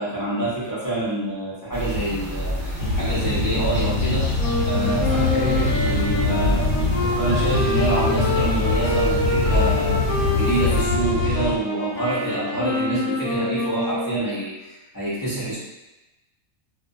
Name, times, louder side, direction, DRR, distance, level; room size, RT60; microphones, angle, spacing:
voice 1, 0.0-6.7 7.2-15.6, right 2 dB, 25° left, -10 dB, 0.4 m, -27 dB
sound 1, 1.7-10.8, left 1 dB, 20° right, 0.9 m, -28 dB
sound 2, 2.8-11.6, left 3 dB, 75° left, 1.0 m, -24 dB
sound 3, 4.4-14.4, left 2 dB, 10° left, 0.8 m, -26 dB
2.4 x 2.1 x 2.6 m, 1.0 s
omnidirectional pair, 1.5 m